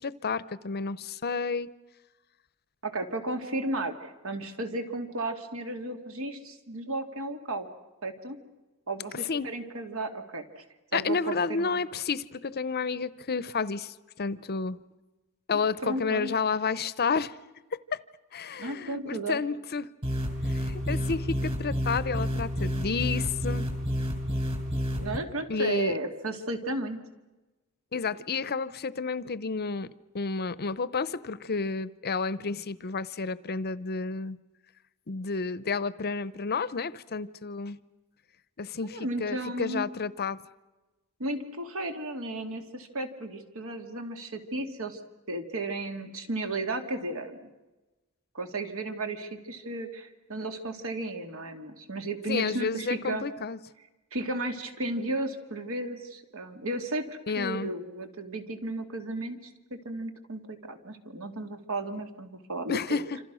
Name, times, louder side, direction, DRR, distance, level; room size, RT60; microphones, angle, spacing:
voice 1, 0.0-1.7 9.1-9.5 10.9-14.8 15.5-17.4 17.7-18.0 18.3-19.9 20.4-23.7 25.5-26.0 27.9-29.9 30.1-34.4 35.1-37.8 38.6-40.4 52.3-53.6 57.3-57.7 62.7-63.2, left 5 dB, 45° left, 17 dB, 0.7 m, -31 dB
voice 2, 2.8-7.7 8.0-8.4 8.9-10.6 10.9-11.8 15.5-16.3 18.6-19.4 25.0-27.0 38.8-39.9 41.2-45.0 45.3-47.4 48.3-53.2 54.1-59.4 59.8-63.0, right 2 dB, 65° right, 6 dB, 2.7 m, -34 dB
sound 1, 20.0-25.2, equal, 25° right, 5.1 m, -30 dB
27.5 x 27.0 x 6.3 m, 1.1 s
head